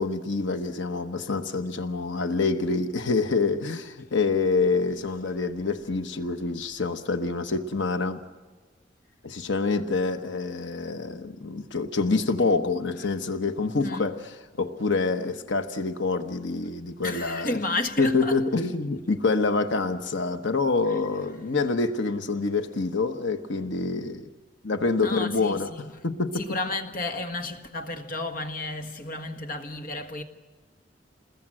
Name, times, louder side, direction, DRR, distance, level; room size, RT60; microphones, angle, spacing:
voice 1, 0.0-8.2 9.2-14.2 14.6-17.6 18.0-24.3 24.6-25.7 26.0-26.4, left 3 dB, 85° left, 1.2 m, -26 dB
voice 2, 17.0-18.4 20.9-21.0 25.0-26.0 26.3-30.2, left 2 dB, 50° left, 1.6 m, -32 dB
28.5 x 21.0 x 7.8 m
head